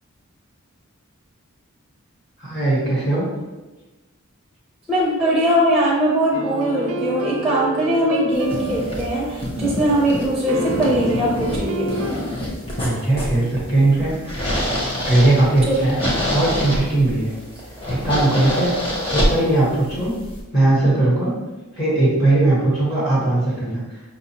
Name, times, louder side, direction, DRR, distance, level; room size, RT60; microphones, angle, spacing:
voice 1, 2.4-3.2 12.8-14.1 15.1-16.0 16.3-17.3 17.9-18.7 19.1-20.1 20.5-21.3 21.7-23.8, right 2 dB, 50° left, -8 dB, 1.4 m, -19 dB
voice 2, 4.9-11.9 15.7-15.9, right 1 dB, ahead, -4 dB, 0.5 m, -20 dB
sound 1, 6.3-9.6 10.5-12.1, right 1 dB, 85° right, 0.5 m, -29 dB
sound 2, 8.3-20.4, equal, 25° left, 0.8 m, -26 dB
5.1 x 2.7 x 2.9 m, 1.1 s
head